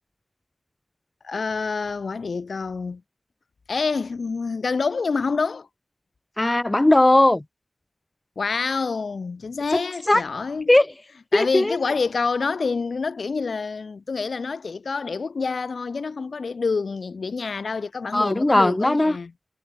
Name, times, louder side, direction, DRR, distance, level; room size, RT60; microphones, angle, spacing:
voice 1, 1.2-3.0 3.7-5.7 8.4-10.7 11.3-19.3, left 4 dB, 85° left, 3.9 m, -27 dB
voice 2, 6.4-7.4 9.7-9.8 10.1-10.2 10.7-10.9 11.3-11.8 18.1-19.2, left 1 dB, 25° left, 2.3 m, -18 dB
wide cardioid pair, 60°, 0 cm